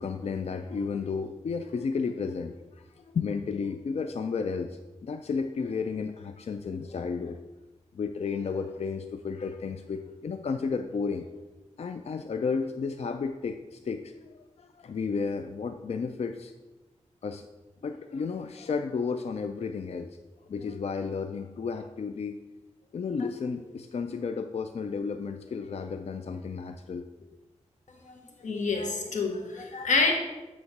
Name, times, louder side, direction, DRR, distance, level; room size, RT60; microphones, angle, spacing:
voice 1, 0.0-7.4 7.9-11.3 11.8-14.1 14.6-16.5 17.2-17.4 17.8-20.2 20.5-22.4 22.9-27.1, left 5 dB, 60° left, 7 dB, 0.4 m, -32 dB
voice 2, 28.0-30.1, left 4 dB, 90° left, 2 dB, 1.0 m, -28 dB
7.8 x 3.1 x 5.8 m, 1.1 s
cardioid pair, 50°, 12 cm